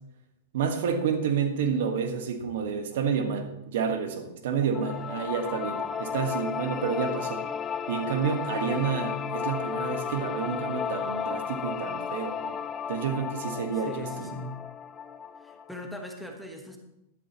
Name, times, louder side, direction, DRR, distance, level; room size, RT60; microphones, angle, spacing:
voice 1, 0.5-7.5 7.9-12.5 12.9-14.4, right 6 dB, 70° right, 6 dB, 1.4 m, -29 dB
sound 1, 4.7-15.8, left 7 dB, 20° left, 0.4 m, -34 dB
voice 2, 13.8-14.7 15.4-16.8, left 1 dB, ahead, 2 dB, 1.3 m, -40 dB
12.0 x 11.5 x 3.0 m, 0.88 s
supercardioid pair, 150°, 0 cm